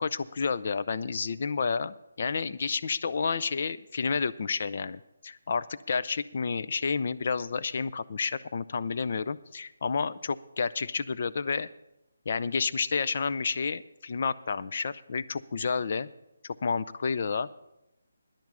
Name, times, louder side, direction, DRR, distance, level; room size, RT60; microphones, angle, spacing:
voice 1, 0.0-11.7 12.3-16.1 16.4-17.5, left 5 dB, 45° left, 14 dB, 0.5 m, -30 dB
10.5 x 7.3 x 8.2 m, 0.87 s
hypercardioid pair, 165°, 0 cm